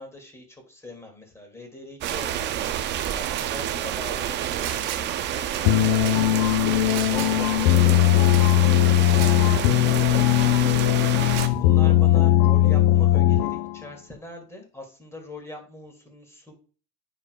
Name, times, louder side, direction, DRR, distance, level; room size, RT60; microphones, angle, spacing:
voice 1, 0.0-2.7 3.1-6.1 7.1-10.8 11.2-16.5, left 1 dB, 5° left, 2 dB, 2.2 m, -42 dB
sound 1, 2.0-11.5, right 11 dB, 25° right, 0.3 m, -29 dB
sound 2, 2.0-2.3 3.4-3.5 4.3-5.2 6.0-6.2 6.9-7.4 8.3-8.5 9.0-9.4 10.2-10.3 11.2-11.6, right 11 dB, 80° right, 1.4 m, -37 dB
sound 3, 5.6-13.7, left 13 dB, 70° left, 0.7 m, -19 dB
9.5 x 4.9 x 2.3 m, 0.38 s
supercardioid pair, 115°, 46 cm